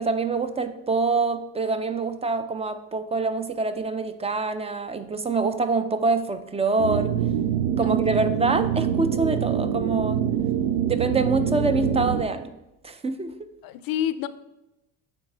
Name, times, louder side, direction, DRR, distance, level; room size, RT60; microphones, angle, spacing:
voice 1, 0.0-7.1 7.8-10.2 10.9-12.6 12.8-13.3, right 3 dB, 15° right, 10 dB, 0.3 m, -25 dB
sound 1, 6.8-12.2, right 9 dB, 80° right, 0.5 m, -25 dB
voice 2, 7.8-8.3 13.6-14.3, left 10 dB, 55° left, 14 dB, 0.5 m, -29 dB
9.0 x 3.6 x 3.3 m, 0.94 s
hypercardioid pair, 70°, 44 cm